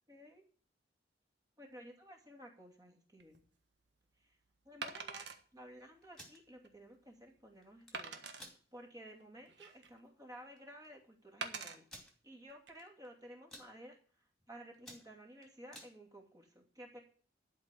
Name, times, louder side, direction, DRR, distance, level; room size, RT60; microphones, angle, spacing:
voice 1, 0.1-0.4 1.6-3.4 4.2-4.3 4.6-5.3 5.5-11.8 12.2-14.0 14.5-17.0, equal, 20° right, 1 dB, 2.6 m, -54 dB
Wood, 3.2-3.4 4.8-5.4 6.0-6.1 6.6-6.7 7.9-8.4 9.2-10.0 11.4-11.8 12.5-12.7, right 5 dB, 70° right, 1.4 m, -44 dB
sound 1, 6.0-6.4 7.6-8.0 8.4-8.6 9.1-9.2 9.5-9.8 10.6-10.7 10.8-10.9 11.9-12.1 12.8-13.1 13.3-13.7 14.3-14.4 14.7-15.9, equal, ahead, 2.7 m, -54 dB
12.0 x 5.3 x 8.5 m, 0.43 s
head